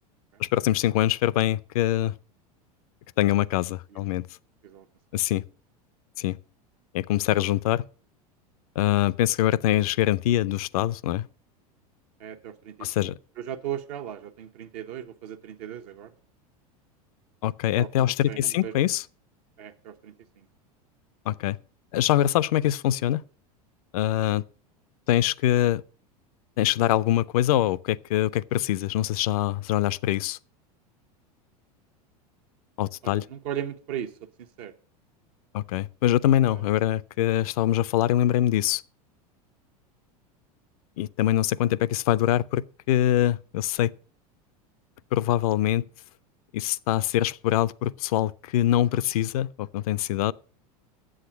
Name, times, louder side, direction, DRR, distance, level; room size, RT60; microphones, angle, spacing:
voice 1, 0.4-2.1 3.2-4.3 5.1-5.4 6.2-6.4 6.9-7.8 8.8-11.3 12.8-13.1 17.4-19.0 21.3-21.6 21.9-23.2 23.9-24.4 25.1-25.8 26.6-30.4 32.8-33.3 35.5-38.8 41.0-43.9 45.1-45.8 46.5-50.3, left 13 dB, 65° left, 0.5 m, -24 dB
voice 2, 12.2-16.1 17.8-18.7 19.6-20.4 33.0-34.1 34.6-34.7 36.3-36.7, right 10 dB, 65° right, 1.1 m, -37 dB
8.6 x 7.7 x 5.7 m
hypercardioid pair, 90°, 20 cm